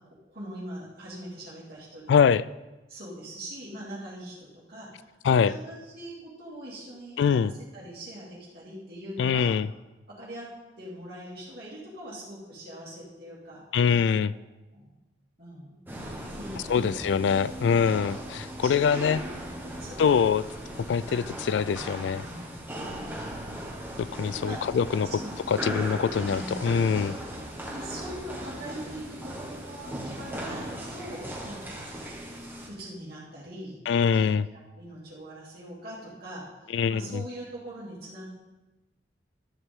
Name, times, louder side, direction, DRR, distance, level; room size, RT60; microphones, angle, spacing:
voice 1, 0.3-2.3 2.9-5.1 5.4-9.6 10.1-10.5 10.8-13.6 14.3-14.4 14.7-14.9 15.4-15.8 16.3-17.2 18.6-20.3 22.3-23.5 24.4-24.6 25.0-25.3 25.7-25.9 26.3-26.6 27.7-31.9 32.7-33.8 34.1-38.2, right 1 dB, 55° right, -6 dB, 2.6 m, -42 dB
voice 2, 2.1-2.4 5.2-5.6 7.2-7.5 9.2-9.7 13.7-14.3 16.7-19.2 20.0-20.4 20.9-22.3 24.0-25.1 25.5-27.2 33.9-34.5 36.7-37.2, left 6 dB, 70° left, 18 dB, 0.3 m, -24 dB
sound 1, 15.9-32.7, right 1 dB, 10° right, 1.4 m, -38 dB
13.0 x 8.3 x 3.6 m, 1.1 s
head